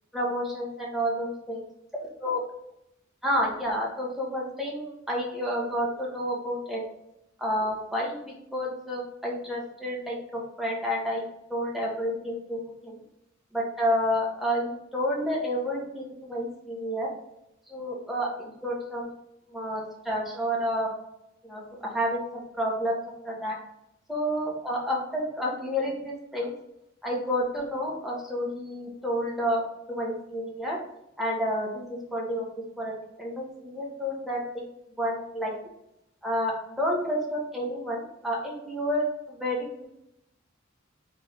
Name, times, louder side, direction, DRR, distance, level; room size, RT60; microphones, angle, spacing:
voice 1, 0.1-1.6 2.2-2.4 3.2-6.8 7.4-8.2 8.5-13.0 13.5-17.1 17.7-19.1 19.5-20.9 21.4-23.0 23.2-23.6 24.1-26.5 27.0-29.6 29.9-30.8 31.2-32.5 32.8-32.9 33.2-34.7 35.0-35.6 36.2-39.8, equal, ahead, -4 dB, 1.0 m, -30 dB
3.3 x 3.0 x 3.5 m, 0.82 s
head